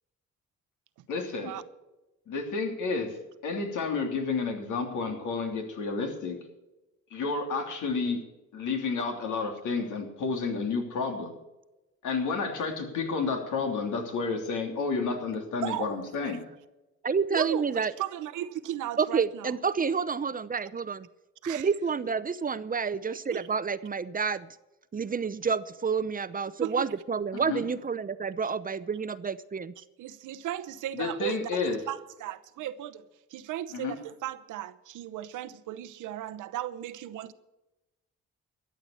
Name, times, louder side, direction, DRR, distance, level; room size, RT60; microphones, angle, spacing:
voice 1, 1.1-1.5 2.3-3.2 3.4-6.4 7.1-8.2 8.5-11.3 12.0-16.4 27.3-27.6 30.9-31.8 33.7-33.9, left 4 dB, 80° left, 3.1 m, -30 dB
voice 2, 15.6-16.4 17.3-19.6 21.4-21.7 23.3-23.5 26.6-26.9 29.8-33.0 33.3-37.3, right 12 dB, 85° right, 0.9 m, -36 dB
voice 3, 17.0-17.9 19.0-21.1 21.5-24.5 24.9-29.7, right 5 dB, 30° right, 0.7 m, -29 dB
13.5 x 8.0 x 8.5 m
cardioid pair, 90°, 30 cm